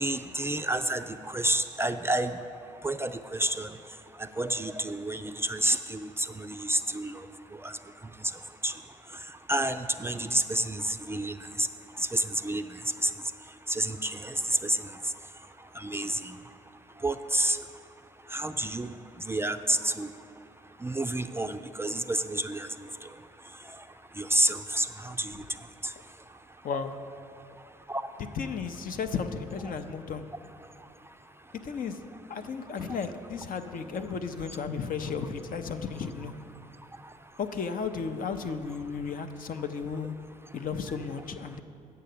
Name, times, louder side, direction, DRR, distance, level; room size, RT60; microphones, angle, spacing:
voice 1, 0.0-2.4 2.8-3.7 4.2-7.3 7.5-7.8 8.6-8.7 9.5-11.7 12.0-13.1 13.7-15.1 15.7-16.4 17.0-17.6 18.3-19.0 19.2-20.1 20.8-22.7 23.0-23.1 24.2-25.4 25.8-25.9 27.9-28.0 32.9-33.0, right 1 dB, 15° right, 8 dB, 0.4 m, -29 dB
voice 2, 28.4-30.3 31.6-32.0 32.3-36.3 37.4-40.1 40.5-41.6, left 5 dB, 55° left, 8 dB, 0.6 m, -34 dB
7.6 x 6.7 x 6.7 m, 2.5 s
hypercardioid pair, 50°, 17 cm